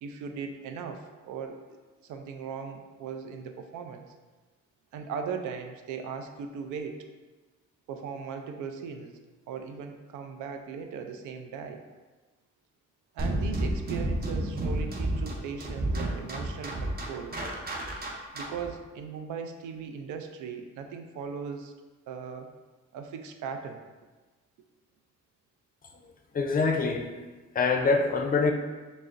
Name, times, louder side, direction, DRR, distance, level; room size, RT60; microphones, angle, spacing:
voice 1, 0.0-4.1 4.9-7.0 7.9-9.2 9.5-11.8 13.1-17.3 18.3-21.7 22.1-22.5 22.9-23.8, right 6 dB, 80° right, 6 dB, 0.5 m, -38 dB
sound 1, 13.2-18.7, right 1 dB, 30° right, 0.7 m, -31 dB
voice 2, 26.3-27.1 27.5-28.5, left 4 dB, 30° left, 3 dB, 0.5 m, -24 dB
6.1 x 2.0 x 2.5 m, 1.3 s
cardioid pair, 90°, 30 cm